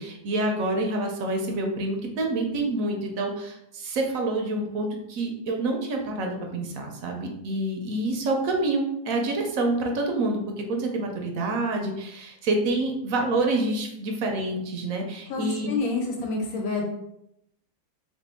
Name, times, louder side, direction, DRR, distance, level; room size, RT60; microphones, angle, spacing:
voice 1, 0.0-15.7, right 2 dB, 70° right, 2 dB, 1.0 m, -27 dB
voice 2, 15.3-16.8, left 3 dB, 65° left, 0 dB, 1.1 m, -28 dB
2.9 x 2.8 x 3.4 m, 0.79 s
omnidirectional pair, 1.6 m